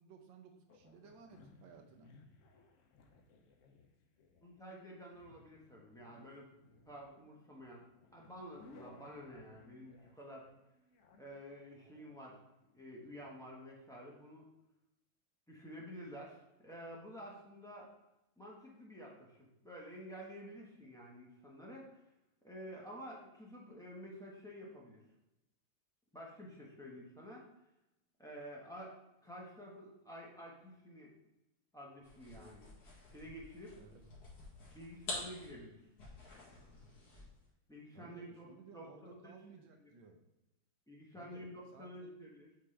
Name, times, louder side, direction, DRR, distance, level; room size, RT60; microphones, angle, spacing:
voice 1, 0.0-2.1 33.8-34.0 37.9-40.2 41.1-41.5 41.7-42.1, right 5 dB, 75° right, 4 dB, 1.5 m, -57 dB
sound 1, 0.7-13.4, left 3 dB, 80° left, 0.6 m, -63 dB
voice 2, 4.4-6.5 6.8-10.4 11.2-12.4 12.7-14.5 15.5-17.9 18.4-21.9 22.4-25.0 26.1-27.5 28.2-29.0 29.2-31.1 31.7-32.6 33.1-33.8 34.7-35.8 37.7-38.5 38.7-39.4 39.8-39.9 40.9-42.5, equal, 5° left, -4 dB, 0.8 m, -50 dB
sound 2, 32.0-37.4, left 2 dB, 50° left, 2.1 m, -48 dB
8.3 x 3.7 x 3.3 m, 0.92 s
omnidirectional pair, 2.2 m